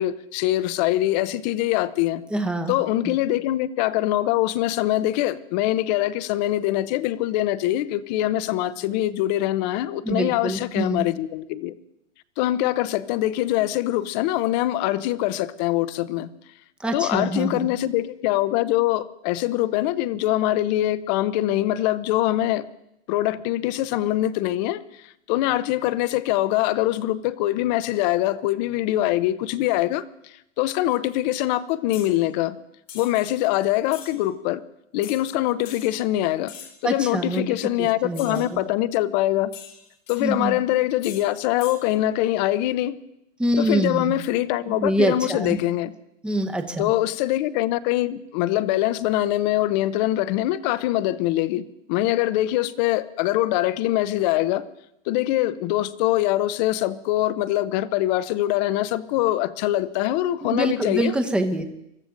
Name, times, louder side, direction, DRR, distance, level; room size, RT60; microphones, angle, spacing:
voice 1, 0.0-2.2 2.7-11.7 12.4-16.3 16.9-22.6 23.1-24.8 25.3-32.6 32.9-34.6 34.9-36.5 36.8-39.5 40.1-43.0 43.6-45.9 46.8-54.6 55.1-61.1, left 15 dB, 35° left, 16 dB, 0.7 m, -23 dB
voice 2, 2.3-2.7 3.0-3.2 10.0-11.1 16.8-17.7 36.8-37.4 37.8-38.6 40.2-40.6 43.4-44.1 44.7-45.6 46.2-46.9 60.4-61.6, right 1 dB, 5° right, 6 dB, 0.9 m, -25 dB
sound 1, 31.9-32.1 32.9-33.3 33.9-34.1 35.0-35.2 35.6-35.9 36.5-36.8 38.1-38.5 39.5-40.2 41.0-41.3 41.6-41.8, left 8 dB, 90° left, 3.9 m, -41 dB
23.5 x 14.0 x 3.8 m, 0.80 s
hypercardioid pair, 145°, 38 cm